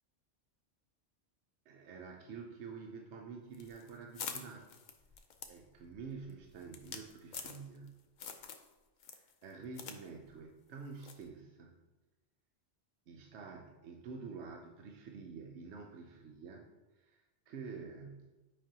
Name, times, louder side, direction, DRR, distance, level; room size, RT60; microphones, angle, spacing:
voice 1, 1.7-4.7 5.5-8.0 9.1-11.7 13.1-16.7 16.9-18.3, right 5 dB, 75° right, 1 dB, 1.0 m, -48 dB
sound 1, 3.5-7.9 8.2-8.7 9.0-10.0 10.3-10.4 11.0-11.3, left 6 dB, 50° left, 0.6 m, -46 dB
8.5 x 5.1 x 2.8 m, 1.1 s
omnidirectional pair, 1.2 m